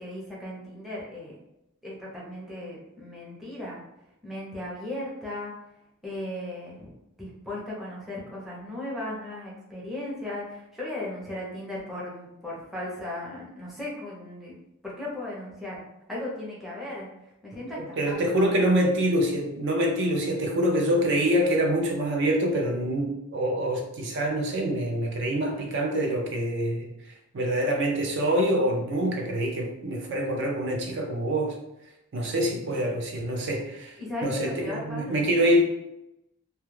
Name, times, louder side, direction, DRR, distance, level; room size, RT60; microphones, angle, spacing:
voice 1, 0.0-1.4 1.8-3.8 4.2-5.5 6.0-6.9 7.2-14.5 14.8-15.8 16.1-17.1 17.4-18.7 34.0-35.6, left 1 dB, ahead, -6 dB, 0.5 m, -36 dB
voice 2, 18.0-26.9 27.3-31.5 32.1-33.9 34.2-35.6, right 1 dB, 55° right, 1 dB, 0.4 m, -25 dB
2.2 x 2.1 x 3.1 m, 0.89 s
head